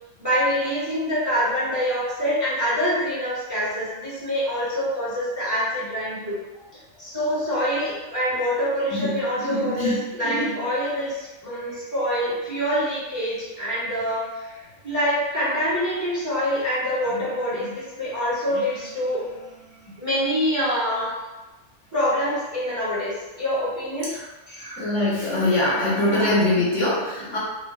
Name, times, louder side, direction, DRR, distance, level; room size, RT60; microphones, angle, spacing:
voice 1, 0.2-6.4 7.0-21.1 21.9-24.1 24.5-24.8 25.2-26.8 27.3-27.4, equal, 15° right, -9 dB, 1.0 m, -26 dB
voice 2, 24.8-27.4, left 2 dB, 60° left, -7 dB, 1.2 m, -22 dB
4.1 x 2.0 x 3.2 m, 1.1 s
omnidirectional pair, 1.5 m